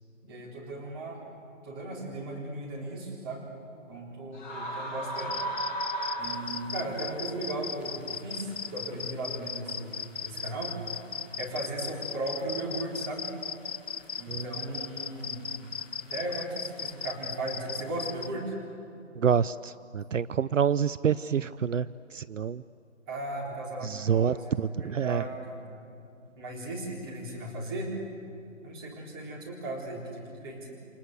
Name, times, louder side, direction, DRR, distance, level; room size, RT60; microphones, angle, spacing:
voice 1, 0.2-1.2 1.6-3.5 3.9-5.4 6.2-10.0 10.2-10.8 11.4-13.3 14.2-15.5 16.1-18.5 23.1-25.6 26.4-27.9 28.6-30.7, right 2 dB, 20° right, -3 dB, 3.8 m, -36 dB
sound 1, 4.3-7.0, right 2 dB, 35° left, 3.6 m, -34 dB
sound 2, 5.2-18.3, left 7 dB, 60° left, 0.5 m, -36 dB
sound 3, 6.2-18.3, equal, 5° right, 3.3 m, -56 dB
voice 2, 14.3-14.8 19.2-22.6 23.8-25.2, right 7 dB, 75° right, 17 dB, 0.6 m, -28 dB
29.0 x 25.5 x 8.1 m, 2.7 s
figure-of-eight pair, 160°, 38 cm